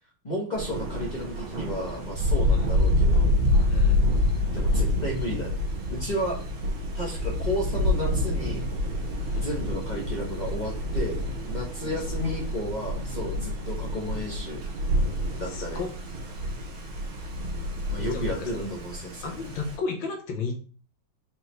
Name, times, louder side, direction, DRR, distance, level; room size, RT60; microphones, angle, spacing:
voice 1, 0.2-3.4 4.5-5.6 5.9-6.4 6.9-8.7 9.3-14.6 15.4-15.8 17.9-19.3, equal, 40° left, -2 dB, 0.6 m, -33 dB
Thunder, 0.6-19.8, left 1 dB, 75° right, 2.1 m, -27 dB
voice 2, 3.7-4.1 9.2-9.5 12.2-12.3 15.4-15.9 18.0-18.7 19.2-20.5, left 4 dB, 80° left, 3 dB, 1.7 m, -33 dB
5.0 x 3.2 x 3.0 m, 0.38 s
omnidirectional pair, 2.1 m